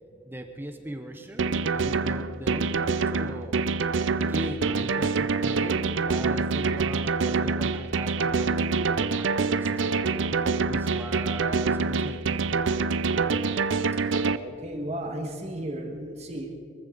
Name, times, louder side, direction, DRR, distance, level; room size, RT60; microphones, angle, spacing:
voice 1, 0.2-3.6 4.3-10.0 10.7-12.6, right 1 dB, 10° right, 5 dB, 0.9 m, -39 dB
sound 1, 1.4-14.4, right 4 dB, 70° right, 0.5 m, -26 dB
voice 2, 14.4-16.5, right 1 dB, 35° right, 1 dB, 1.8 m, -34 dB
23.5 x 15.0 x 4.0 m, 2.2 s
head